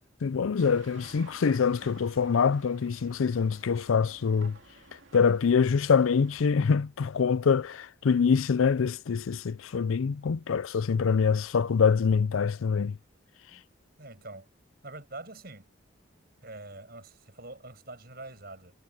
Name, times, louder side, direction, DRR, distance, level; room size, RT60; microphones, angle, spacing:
voice 1, 0.2-4.6 5.1-13.0, left 6 dB, 90° left, 0.5 m, -25 dB
sound 1, 0.6-6.4, right 3 dB, 70° right, 2.7 m, -54 dB
voice 2, 14.0-14.5 14.8-15.7 16.4-18.7, right 2 dB, 50° right, 7.5 m, -45 dB
head